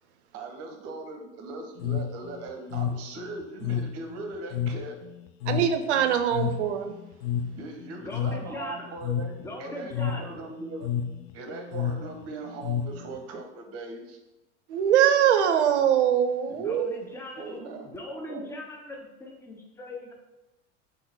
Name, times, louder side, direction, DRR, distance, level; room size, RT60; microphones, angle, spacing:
voice 1, 0.3-5.0 7.5-9.3 9.6-10.9 11.3-14.2 17.4-18.5, right 3 dB, 40° right, 4 dB, 0.8 m, -39 dB
sound 1, 1.8-13.4, left 8 dB, 50° left, 0.5 m, -32 dB
voice 2, 5.5-6.9 14.7-16.9, right 9 dB, 70° right, 8 dB, 0.6 m, -22 dB
voice 3, 8.0-8.9 9.4-10.3 16.5-20.1, left 1 dB, 5° left, 0 dB, 0.7 m, -40 dB
3.6 x 3.2 x 4.5 m, 0.99 s
hypercardioid pair, 85°, 36 cm